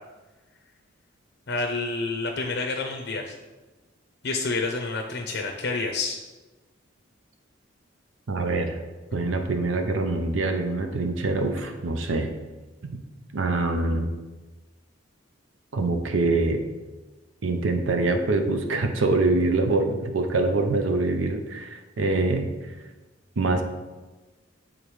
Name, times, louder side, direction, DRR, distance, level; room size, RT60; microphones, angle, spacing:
voice 1, 1.5-3.3 4.2-6.2, left 3 dB, 60° left, 2 dB, 0.6 m, -28 dB
voice 2, 8.3-8.8 9.1-12.3 13.3-14.1 15.7-16.6 17.4-22.5 23.4-23.6, right 3 dB, 75° right, 5 dB, 0.6 m, -24 dB
8.6 x 3.7 x 3.2 m, 1.2 s
head